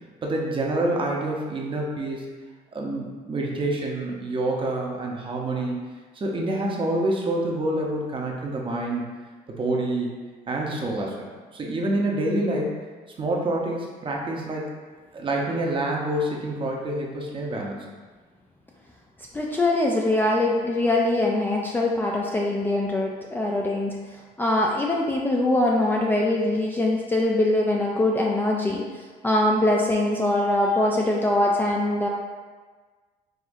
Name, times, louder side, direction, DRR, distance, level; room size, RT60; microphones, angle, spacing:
voice 1, 0.2-2.2 2.7-5.9 6.1-9.1 9.5-10.1 10.5-12.7 13.2-14.7 15.1-17.8, right 1 dB, 30° right, -1 dB, 0.7 m, -27 dB
voice 2, 19.3-32.1, left 1 dB, 10° left, -2 dB, 0.3 m, -23 dB
4.8 x 2.7 x 2.6 m, 1.4 s
cardioid pair, 110°, 17 cm